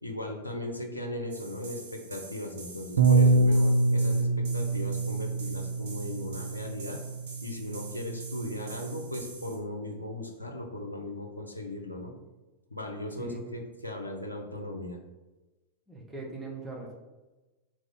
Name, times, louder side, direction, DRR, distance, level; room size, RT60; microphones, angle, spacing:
voice 1, 0.0-7.0 7.4-12.1 12.7-15.0, left 1 dB, 85° left, 2 dB, 0.6 m, -37 dB
sound 1, 1.3-9.6, right 3 dB, 55° right, 0.9 m, -46 dB
Bass guitar, 3.0-9.2, right 2 dB, 70° right, 0.4 m, -26 dB
voice 2, 15.9-16.9, right 3 dB, 10° right, -2 dB, 1.0 m, -40 dB
3.8 x 3.1 x 3.6 m, 1.1 s
figure-of-eight pair, 90°, 0 cm